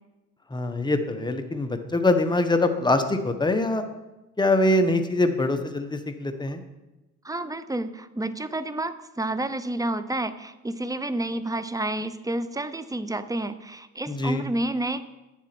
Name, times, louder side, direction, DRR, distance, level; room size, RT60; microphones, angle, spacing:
voice 1, 0.5-3.8 4.4-6.6 14.1-14.5, left 2 dB, 15° left, 6 dB, 1.1 m, -23 dB
voice 2, 7.2-15.0, right 1 dB, 10° right, 12 dB, 0.6 m, -30 dB
9.4 x 7.3 x 6.0 m, 1.0 s
cardioid pair, 90°, 30 cm